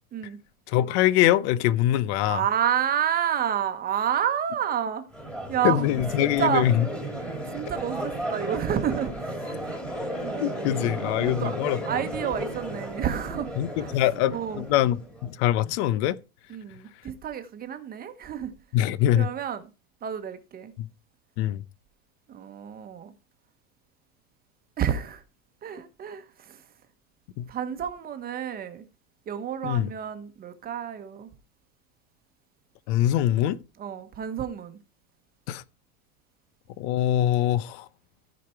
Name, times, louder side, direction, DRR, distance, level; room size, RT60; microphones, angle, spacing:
voice 1, 0.7-2.4 5.6-6.9 10.4-11.8 13.6-16.2 18.7-19.3 20.8-20.9 21.4-21.6 27.4-27.5 29.6-29.9 32.9-33.6 35.5-35.6 36.8-37.8, left 12 dB, 50° left, 0.8 m, -23 dB
voice 2, 2.2-5.0 5.5-6.7 7.5-9.5 10.2-11.6 11.8-14.0 14.3-14.6 16.5-18.5 19.1-19.6 20.0-20.7 22.3-23.1 24.8-25.2 25.6-26.6 27.5-28.9 29.3-31.3 33.8-34.8, right 9 dB, 20° right, 1.1 m, -30 dB
Crowd, 5.1-15.3, right 1 dB, ahead, 2.0 m, -34 dB
15.0 x 5.1 x 4.5 m
supercardioid pair, 150°, 42 cm